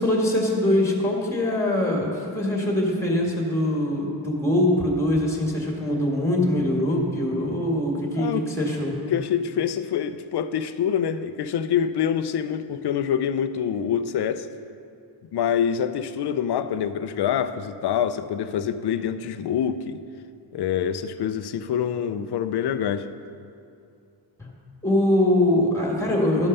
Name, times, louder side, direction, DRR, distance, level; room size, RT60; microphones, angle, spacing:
voice 1, 0.0-8.9 24.4-24.5 24.8-26.5, left 1 dB, 5° left, -1 dB, 1.9 m, -23 dB
voice 2, 8.2-8.5 9.1-14.5 15.3-20.0 20.5-23.1, left 8 dB, 60° left, 11 dB, 0.6 m, -26 dB
12.5 x 5.4 x 5.5 m, 2.4 s
cardioid pair, 110°, 46 cm